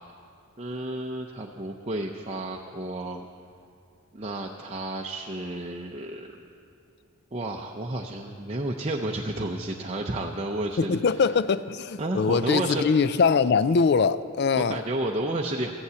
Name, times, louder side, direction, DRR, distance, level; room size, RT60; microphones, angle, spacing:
voice 1, 0.6-3.3 4.1-6.3 7.3-11.0 12.0-12.9 14.6-15.7, right 2 dB, 30° right, 0 dB, 0.6 m, -31 dB
voice 2, 10.8-14.8, left 5 dB, 50° left, 15 dB, 0.4 m, -22 dB
14.5 x 8.4 x 8.1 m, 2.5 s
head